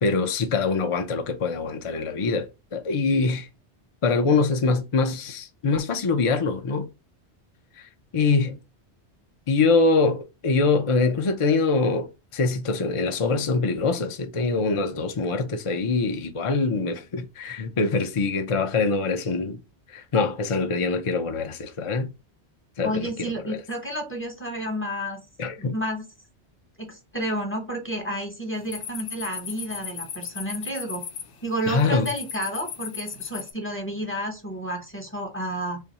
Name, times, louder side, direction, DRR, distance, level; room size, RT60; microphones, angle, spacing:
voice 1, 0.0-3.5 4.0-6.9 7.8-8.6 9.5-19.6 19.9-22.1 22.8-23.1 23.5-23.6 25.4-25.7 31.7-32.1, left 4 dB, 45° left, 0.4 m, -24 dB
voice 2, 22.8-25.2 25.6-26.1 26.8-31.0 31.4-35.8, right 1 dB, 10° left, 1.0 m, -31 dB
sound 1, 28.5-33.5, left 8 dB, 85° left, 1.0 m, -37 dB
3.4 x 2.5 x 4.1 m
omnidirectional pair, 1.2 m